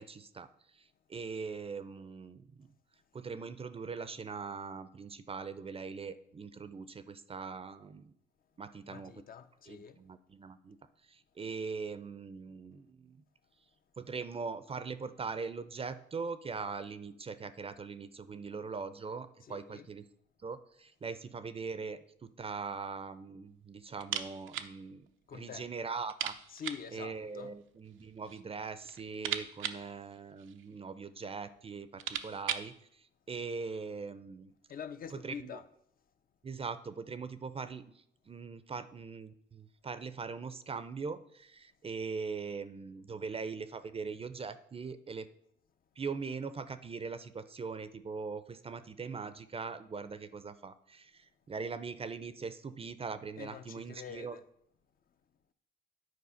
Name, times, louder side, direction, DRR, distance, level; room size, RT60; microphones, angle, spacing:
voice 1, 0.0-2.7 3.1-8.1 8.6-9.2 9.7-10.8 11.0-13.2 14.0-20.0 20.4-26.3 26.9-34.5 35.1-35.6 36.4-45.3 46.0-54.4, right 5 dB, 30° right, 0.5 m, -41 dB
voice 2, 8.9-10.0 19.5-19.9 25.3-25.7 26.5-27.5 34.7-35.6 53.4-54.4, left 7 dB, 45° left, 0.6 m, -45 dB
sound 1, 24.0-24.8 25.0-25.1 25.5-25.6 26.1-26.9 27.9-28.5 28.8-30.8 31.5-31.6 31.8-32.8, right 10 dB, 85° right, 0.6 m, -39 dB
9.5 x 4.5 x 5.6 m
cardioid pair, 90°, 20 cm